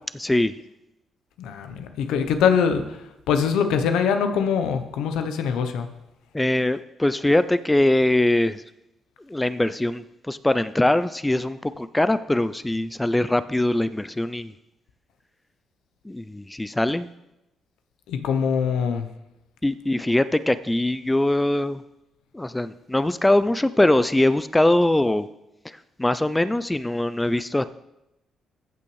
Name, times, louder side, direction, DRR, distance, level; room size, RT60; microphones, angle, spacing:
voice 1, 0.1-0.5 6.3-8.6 9.3-14.5 16.0-17.1 19.6-21.8 22.3-25.3 25.6-27.6, left 1 dB, 10° left, 13 dB, 0.3 m, -22 dB
voice 2, 1.4-5.9 18.1-19.1, left 7 dB, 90° left, 8 dB, 0.7 m, -23 dB
15.0 x 5.9 x 3.1 m, 0.90 s
cardioid pair, 90°, 0 cm